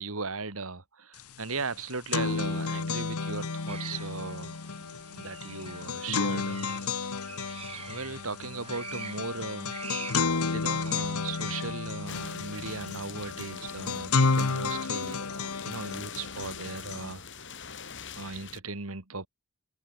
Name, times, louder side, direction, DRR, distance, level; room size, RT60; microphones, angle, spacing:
voice 1, 0.0-7.1 7.7-10.1 10.5-17.5 18.1-19.3, right 4 dB, 70° right, 2.2 m, -38 dB
sound 1, 1.2-1.3 1.6-17.1, left 4 dB, 80° left, 1.1 m, -32 dB
sound 2, 3.7-11.7, right 6 dB, 25° right, 3.7 m, -46 dB
sound 3, 12.1-18.6, left 6 dB, 55° left, 6.6 m, -44 dB
open air
head